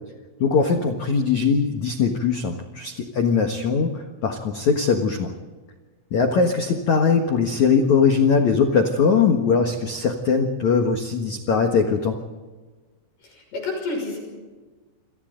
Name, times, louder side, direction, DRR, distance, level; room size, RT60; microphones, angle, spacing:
voice 1, 0.4-5.3 6.1-12.2, left 5 dB, 80° left, 4 dB, 1.6 m, -21 dB
voice 2, 13.2-14.2, left 3 dB, 50° left, 2 dB, 7.8 m, -29 dB
28.0 x 27.5 x 3.9 m, 1.4 s
omnidirectional pair, 6.0 m